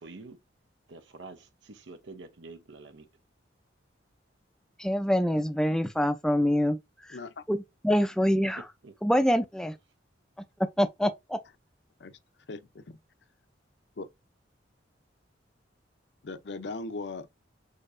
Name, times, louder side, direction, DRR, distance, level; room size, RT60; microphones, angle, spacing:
voice 1, 0.0-0.4 0.9-3.0 8.8-8.9, right 3 dB, 75° right, 0.7 m, -47 dB
voice 2, 4.8-6.8 7.5-8.7 9.0-9.8 10.8-11.4, equal, 5° left, 0.4 m, -25 dB
voice 3, 7.1-7.4 12.0-12.1 12.5-13.0 14.0-14.1 16.2-17.3, left 3 dB, 65° left, 0.6 m, -38 dB
6.5 x 2.8 x 2.5 m
head